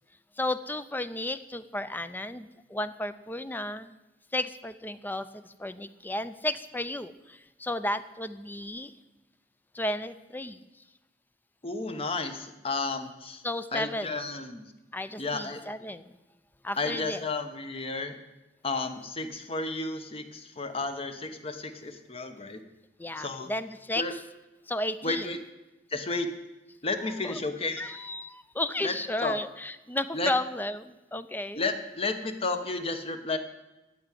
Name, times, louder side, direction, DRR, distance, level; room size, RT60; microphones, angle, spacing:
voice 1, 0.4-4.0 4.3-8.9 9.7-10.6 13.4-14.2 14.9-16.1 16.6-17.2 23.0-24.2 24.7-25.3 27.2-27.4 27.8-31.6, left 1 dB, 10° left, 13 dB, 0.5 m, -33 dB
voice 2, 11.6-13.4 13.7-14.7 15.2-15.6 16.8-18.1 18.6-22.6 23.2-23.5 24.0-24.1 25.0-25.4 25.9-26.3 26.8-27.9 28.8-28.9 29.2-29.3 30.1-30.3 31.5-33.4, left 3 dB, 35° left, 8 dB, 1.1 m, -32 dB
14.0 x 4.9 x 9.1 m, 1.0 s
head